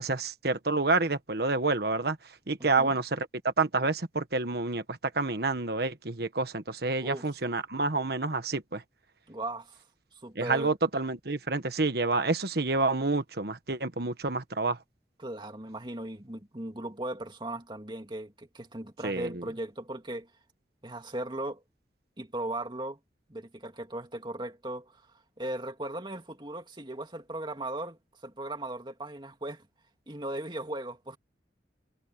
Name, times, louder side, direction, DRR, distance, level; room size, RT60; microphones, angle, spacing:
voice 1, 0.0-2.2 2.5-3.3 3.6-8.8 10.4-14.8 19.0-19.4, right 3 dB, 60° right, 1.4 m, -28 dB
voice 2, 2.6-2.9 7.0-7.3 9.3-9.8 10.2-10.7 15.2-20.3 20.8-21.6 22.2-23.0 23.3-25.0 25.4-29.6 30.1-31.2, right 1 dB, 25° right, 2.5 m, -37 dB
head